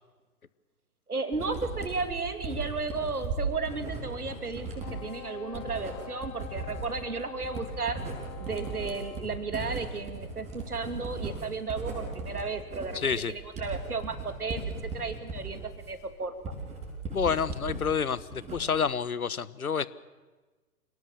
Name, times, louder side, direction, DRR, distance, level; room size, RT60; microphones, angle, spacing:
voice 1, 1.1-8.0 8.4-16.5, right 4 dB, 75° right, 10 dB, 2.8 m, -34 dB
Writing, 1.3-17.8 18.2-18.9, right 3 dB, 15° right, 6.8 m, -37 dB
Wind instrument woodwind instrument, 4.8-9.3, left 14 dB, 30° left, 2.6 m, -46 dB
voice 2, 12.9-13.3 17.1-19.9, left 6 dB, 70° left, 18 dB, 1.3 m, -28 dB
27.5 x 18.5 x 7.4 m, 1.3 s
figure-of-eight pair, 125°, 45 cm